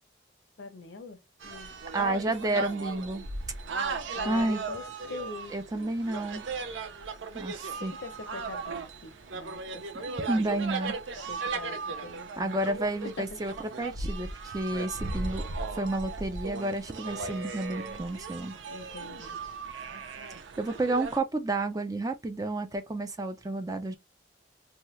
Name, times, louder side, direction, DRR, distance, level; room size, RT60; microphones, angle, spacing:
voice 1, 0.6-1.2 1.4-1.7 2.0-2.2 2.5-3.0 4.1-4.8 5.1-5.6 7.8-10.1 11.1-12.5 18.7-19.4, left 3 dB, 75° left, 0.6 m, -42 dB
sound 1, 1.4-21.2, right 4 dB, 75° right, 0.5 m, -37 dB
voice 2, 1.9-3.2 4.2-4.6 5.5-6.4 7.3-7.9 10.3-10.9 12.4-15.4 15.8-18.6 20.6-23.9, right 2 dB, 20° right, 0.4 m, -30 dB
2.8 x 2.3 x 3.1 m
head